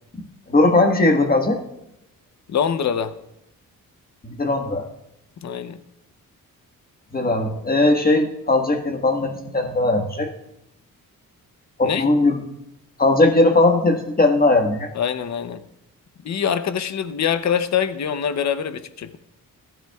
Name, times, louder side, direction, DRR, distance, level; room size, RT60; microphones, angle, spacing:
voice 1, 0.1-1.6 4.2-4.9 7.1-10.3 11.8-12.4 13.0-14.9, left 2 dB, 25° left, 3 dB, 1.4 m, -19 dB
voice 2, 2.5-3.1 5.4-5.8 11.8-12.1 14.9-15.6 16.2-19.2, left 8 dB, 50° left, 11 dB, 0.8 m, -24 dB
17.5 x 12.0 x 2.4 m, 0.84 s
cardioid pair, 115°, 34 cm